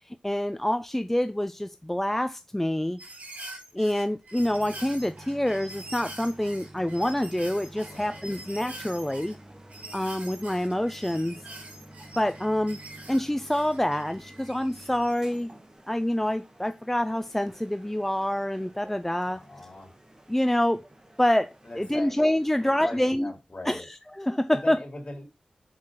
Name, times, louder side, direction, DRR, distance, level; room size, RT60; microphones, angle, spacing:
voice 1, 0.1-3.0 3.7-9.3 9.9-11.4 12.2-12.8 13.1-15.5 15.9-19.4 20.3-20.8 21.2-23.3 23.7-24.8, left 1 dB, 10° left, 0.4 m, -26 dB
sound 1, 3.0-15.4 16.1-16.2, right 1 dB, 70° right, 2.8 m, -45 dB
sound 2, 4.4-23.0, right 1 dB, 25° right, 1.6 m, -50 dB
voice 2, 7.8-8.2 19.2-19.9 21.6-22.2 22.5-23.9 24.5-25.2, left 2 dB, 45° left, 3.3 m, -40 dB
6.5 x 6.0 x 3.8 m
wide cardioid pair, 60°, 2 cm